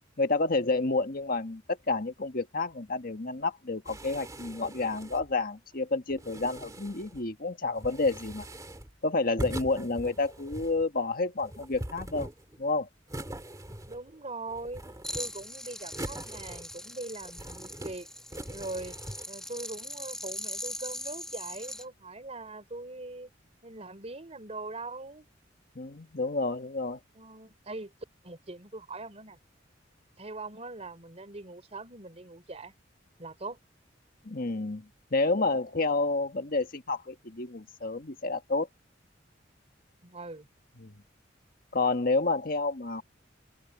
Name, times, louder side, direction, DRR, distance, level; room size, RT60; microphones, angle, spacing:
voice 1, 0.2-8.5 9.0-12.3 12.6-12.9 25.7-27.0 34.2-38.7 40.8-40.9 41.7-43.0, left 3 dB, 50° left, 1.5 m, -29 dB
sound 1, 3.8-5.3 6.1-7.2 7.8-8.9 9.4-10.8 11.4-12.6 13.1-14.2 14.5-15.5 15.9-16.9 17.2-18.0 18.3-19.3, right 1 dB, 20° right, 2.4 m, -42 dB
voice 2, 13.7-14.8 15.1-18.1 18.5-19.0 19.3-23.3 23.6-25.3 27.2-27.9 28.2-29.4 30.2-32.7 33.2-33.6 40.0-40.5, right 2 dB, 35° right, 3.7 m, -41 dB
sound 2, 15.0-21.8, left 1 dB, 5° left, 1.8 m, -41 dB
open air
head